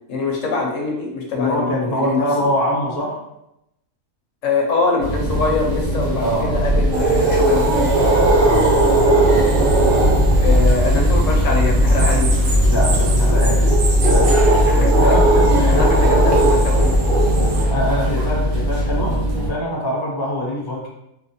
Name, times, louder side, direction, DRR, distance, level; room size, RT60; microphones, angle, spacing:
voice 1, 0.1-2.3 4.4-8.0 10.4-12.4 14.5-14.9 15.7-17.0, left 3 dB, 70° left, -1 dB, 1.0 m, -23 dB
voice 2, 1.3-3.2 6.2-6.5 8.4-9.1 10.5-10.6 12.7-16.3 17.7-20.9, left 1 dB, 25° left, -3 dB, 0.6 m, -24 dB
sound 1, 5.0-19.5, equal, 80° right, 1.1 m, -19 dB
sound 2, 6.9-17.7, right 2 dB, 55° right, 0.6 m, -18 dB
4.1 x 2.2 x 2.6 m, 0.83 s
omnidirectional pair, 1.4 m